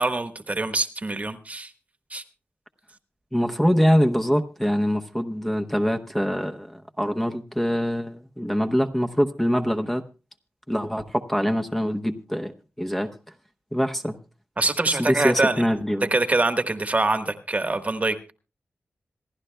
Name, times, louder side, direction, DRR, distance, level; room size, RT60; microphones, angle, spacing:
voice 1, 0.0-1.7 2.1-2.2 14.6-15.6 16.1-18.3, right 2 dB, 35° right, 1.3 m, -24 dB
voice 2, 3.3-10.0 10.7-12.5 12.8-13.1 13.7-14.2 15.0-16.1, equal, 5° left, 0.9 m, -24 dB
26.5 x 11.5 x 2.2 m
cardioid pair, 65°, 4 cm